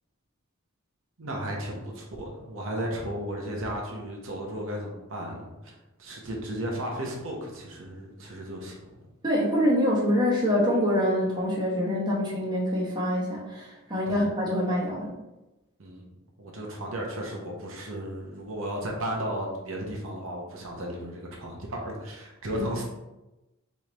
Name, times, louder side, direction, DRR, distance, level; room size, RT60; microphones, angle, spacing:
voice 1, 1.2-8.8 14.1-14.2 15.8-22.8, equal, 65° right, -1 dB, 0.9 m, -34 dB
voice 2, 9.2-15.1 22.5-22.6, equal, 20° right, -5 dB, 1.0 m, -25 dB
3.6 x 3.2 x 4.2 m, 1.0 s
head